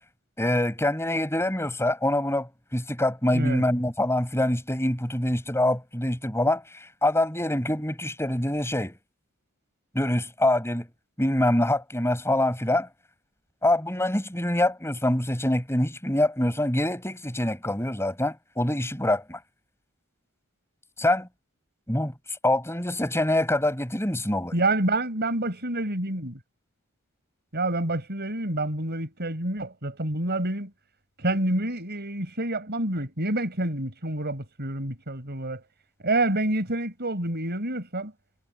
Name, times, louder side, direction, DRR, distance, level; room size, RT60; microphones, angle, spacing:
voice 1, 0.4-9.0 9.9-10.9 11.2-12.9 13.6-19.4 21.0-21.3 21.9-22.1 22.4-24.5, left 1 dB, 10° left, 4.8 m, -25 dB
voice 2, 3.3-3.6 24.5-26.4 27.5-30.7 31.2-35.6 36.0-38.1, right 2 dB, 50° right, 5.0 m, -28 dB
head